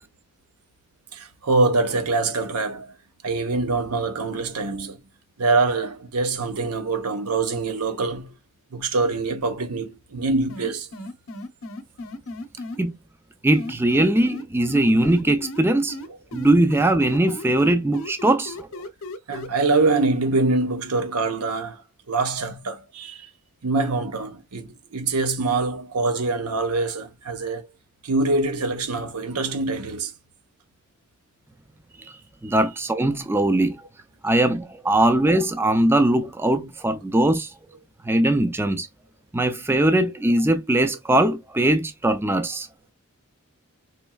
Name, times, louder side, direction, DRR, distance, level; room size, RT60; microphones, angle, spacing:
voice 1, 1.1-2.9 3.2-5.0 5.4-8.3 8.7-10.9 19.3-21.8 22.1-23.3 23.6-27.7 28.0-30.1 33.1-33.2, right 3 dB, 85° right, 0.9 m, -24 dB
sound 1, 10.5-12.8 13.5-15.6 15.9-19.5, left 1 dB, 60° left, 0.8 m, -35 dB
voice 2, 13.4-16.0 16.3-18.7 32.0-32.1 32.4-33.8 34.2-37.5 38.0-38.9 39.3-42.7, right 1 dB, 10° right, 0.3 m, -20 dB
4.3 x 3.1 x 2.3 m
head